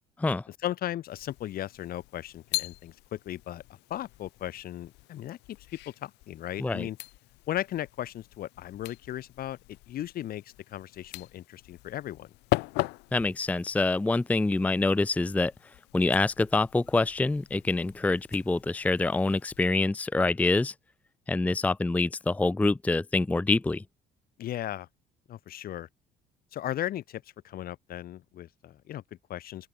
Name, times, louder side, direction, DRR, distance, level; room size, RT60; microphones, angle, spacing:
voice 1, 0.6-7.0 7.5-12.3 24.4-24.9 25.3-25.9 26.5-29.7, left 12 dB, 65° left, 1.7 m, -36 dB
sound 1, 1.0-19.7, left 22 dB, 85° left, 0.5 m, -40 dB
voice 2, 13.1-15.5 15.9-20.7 21.3-23.8, left 3 dB, 10° left, 0.5 m, -26 dB
open air
cardioid pair, 110°, 17 cm